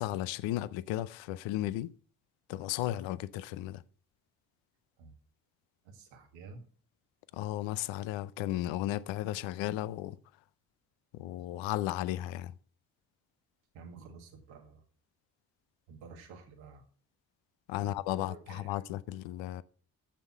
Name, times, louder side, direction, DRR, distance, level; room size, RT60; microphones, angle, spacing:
voice 1, 0.0-1.9 2.5-3.8 7.3-10.2 11.2-12.5 17.7-19.6, left 14 dB, 80° left, 0.6 m, -34 dB
voice 2, 5.8-6.6 13.7-14.8 15.9-16.8 17.8-18.8, right 5 dB, 80° right, 2.0 m, -51 dB
7.2 x 7.1 x 7.3 m
hypercardioid pair, 45°, 45 cm